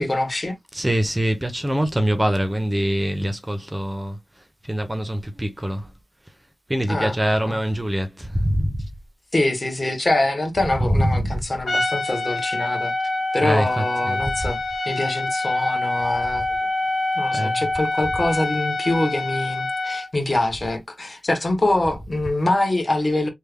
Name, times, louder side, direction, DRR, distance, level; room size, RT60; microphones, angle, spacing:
voice 1, 0.0-0.6 6.9-7.1 7.5-7.6 9.3-12.9 13.3-14.6 14.8-16.6 17.1-23.3, left 2 dB, 35° left, 1.1 m, -24 dB
voice 2, 0.7-5.9 6.7-8.9 10.8-11.4 13.4-14.5 17.3-17.6, equal, 15° right, 0.6 m, -24 dB
Trumpet, 11.7-20.1, left 2 dB, 70° left, 1.3 m, -25 dB
3.3 x 2.1 x 3.4 m
wide cardioid pair, 90°, 0 cm